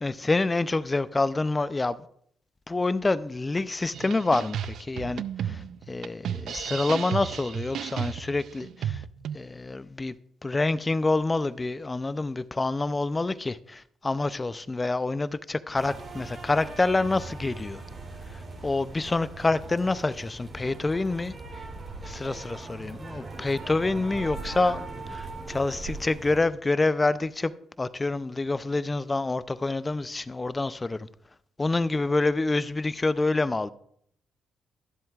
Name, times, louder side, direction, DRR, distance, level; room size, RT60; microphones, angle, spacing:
voice 1, 0.0-2.1 2.7-9.0 9.3-10.2 10.4-17.8 18.3-21.3 22.0-24.8 25.1-27.5 27.8-31.1 31.6-33.7, left 3 dB, 20° left, 0.5 m, -27 dB
sound 1, 3.9-9.4, right 9 dB, 70° right, 0.4 m, -33 dB
sound 2, 15.7-26.4, right 3 dB, 35° right, 3.1 m, -40 dB
22.0 x 7.8 x 2.4 m
cardioid pair, 90°, 0 cm